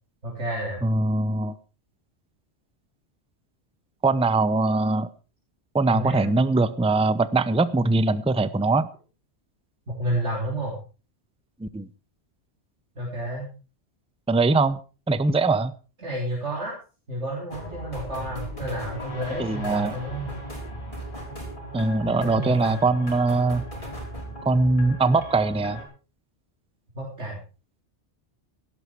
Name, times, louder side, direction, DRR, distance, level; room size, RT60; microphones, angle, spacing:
voice 1, 0.2-0.8 5.9-6.3 9.9-10.7 13.0-13.5 16.0-16.7 17.1-20.3 22.0-22.8 26.9-27.4, right 1 dB, 85° right, -3 dB, 4.3 m, -30 dB
voice 2, 0.8-1.6 4.0-5.1 5.7-8.9 11.6-11.9 14.3-14.8 15.1-15.7 19.4-19.9 21.7-23.6 24.4-25.8, right 3 dB, 5° right, 15 dB, 0.6 m, -22 dB
sound 1, 17.5-25.8, equal, 30° left, 5.8 m, -37 dB
17.0 x 11.5 x 4.8 m, 0.36 s
omnidirectional pair, 1.2 m